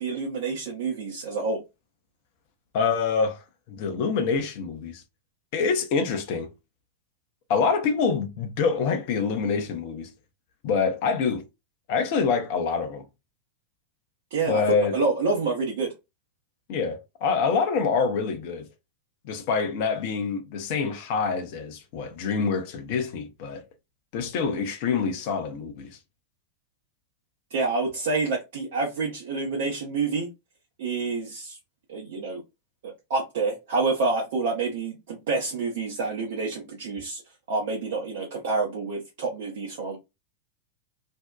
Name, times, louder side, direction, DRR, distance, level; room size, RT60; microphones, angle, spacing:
voice 1, 0.0-1.6 14.3-14.6 14.9-15.9 27.5-30.3 30.8-31.6 31.9-32.4 32.8-37.2 37.5-40.0, right 3 dB, 55° right, 0.6 m, -28 dB
voice 2, 2.7-3.4 3.7-5.0 5.5-6.5 7.5-10.1 10.6-11.4 11.9-13.0 14.5-14.9 16.7-18.7 19.2-23.6 24.1-26.0, left 5 dB, 50° left, 0.6 m, -26 dB
2.6 x 2.1 x 2.2 m
figure-of-eight pair, 90°, 0 cm